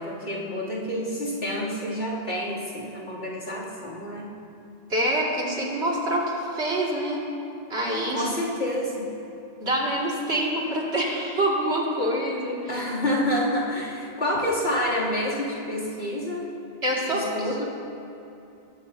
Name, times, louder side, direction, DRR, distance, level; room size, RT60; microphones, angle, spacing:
voice 1, 0.0-4.3 8.1-9.1 12.7-16.4 17.1-17.7, left 1 dB, 75° left, -7 dB, 3.2 m, -28 dB
voice 2, 4.9-7.2 7.7-8.3 9.6-12.6 16.8-17.3, right 1 dB, 85° right, -4 dB, 2.7 m, -26 dB
21.5 x 13.0 x 2.8 m, 2.7 s
omnidirectional pair, 1.1 m